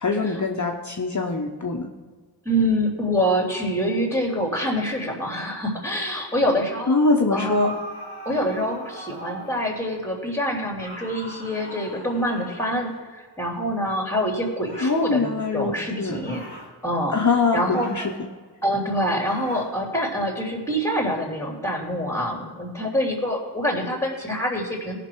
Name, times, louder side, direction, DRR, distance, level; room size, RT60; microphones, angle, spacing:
voice 1, 0.0-1.9 6.9-7.8 14.8-16.2 17.1-18.1, left 3 dB, 45° left, 1 dB, 1.0 m, -23 dB
voice 2, 2.4-7.0 7.3-7.7 8.2-16.4 16.8-17.1 17.5-17.9 18.6-25.0, equal, 5° left, 0 dB, 3.0 m, -25 dB
sound 1, 7.3-9.7 10.8-13.0 14.7-15.1 16.2-16.7 17.7-18.2 19.3-19.7, right 1 dB, 85° right, 3.6 m, -40 dB
18.0 x 6.0 x 4.6 m, 1.5 s
wide cardioid pair, 65°, 40 cm